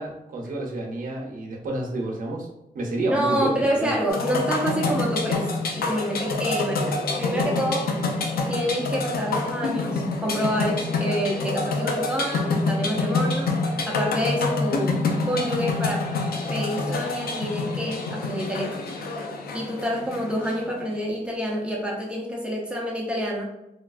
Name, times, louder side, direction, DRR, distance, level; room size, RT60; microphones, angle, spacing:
voice 1, 0.0-2.5 2.7-4.0, right 2 dB, 65° right, -1 dB, 0.7 m, -29 dB
voice 2, 3.0-5.5 5.8-7.9 8.5-13.6 13.9-16.1 16.5-18.8 19.5-23.5, equal, 5° right, -3 dB, 0.6 m, -27 dB
sound 1, 4.1-20.9, left 3 dB, 85° left, 0.4 m, -27 dB
3.3 x 2.3 x 2.4 m, 0.88 s
wide cardioid pair, 165°, 15 cm